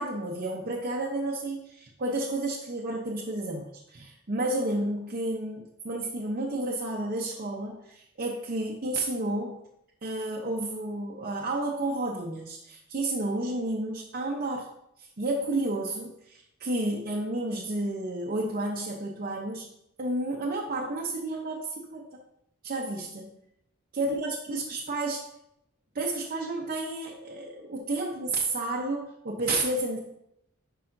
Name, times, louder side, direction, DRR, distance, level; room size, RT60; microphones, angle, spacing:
voice 1, 0.0-9.6 10.0-14.7 15.0-19.7 20.0-22.1 22.6-23.3 23.9-25.2 25.9-30.0, right 2 dB, 45° right, -2 dB, 0.7 m, -31 dB
10.0 x 4.9 x 2.6 m, 0.80 s
head